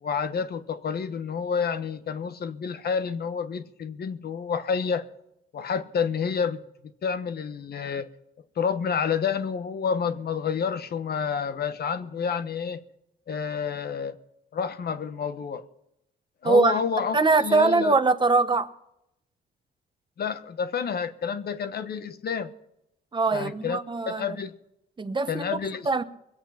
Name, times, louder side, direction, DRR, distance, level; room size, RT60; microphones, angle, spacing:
voice 1, 0.0-5.0 5.5-6.6 7.0-8.1 8.6-12.8 13.3-14.1 14.5-15.7 16.4-18.0 20.2-22.5 23.3-23.8 24.1-24.5 25.3-26.0, left 6 dB, 55° left, 1.2 m, -29 dB
voice 2, 16.4-16.8 17.1-18.7 23.1-24.4 25.0-25.6 25.8-26.0, right 4 dB, 25° right, 1.0 m, -22 dB
22.0 x 8.1 x 5.8 m
cardioid pair, 90°, 20 cm